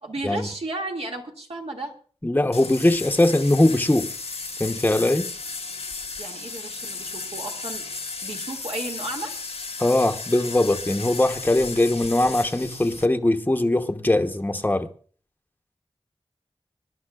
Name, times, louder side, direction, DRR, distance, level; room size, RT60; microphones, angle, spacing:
voice 1, 0.0-1.9 6.2-7.9 8.2-9.3, right 2 dB, 75° right, 2.2 m, -33 dB
voice 2, 2.2-4.1 4.6-5.3 9.8-14.9, left 1 dB, 15° left, 0.8 m, -21 dB
sound 1, 2.5-13.1, left 4 dB, 80° left, 0.9 m, -35 dB
25.0 x 11.0 x 2.4 m
wide cardioid pair, 55°, 10 cm